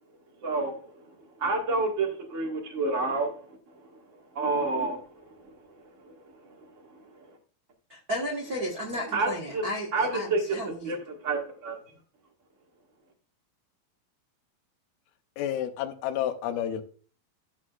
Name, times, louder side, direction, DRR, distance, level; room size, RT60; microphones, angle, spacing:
voice 1, 0.4-0.8 1.4-3.3 4.3-5.0 9.1-9.6 9.9-10.6 10.9-11.0 11.2-11.7, right 3 dB, 45° right, 0 dB, 0.9 m, -28 dB
voice 2, 7.9-10.9, equal, 80° right, -3 dB, 0.8 m, -33 dB
voice 3, 15.4-16.8, left 10 dB, 85° left, 6 dB, 2.8 m, -30 dB
13.5 x 6.4 x 2.4 m, 0.40 s
omnidirectional pair, 4.4 m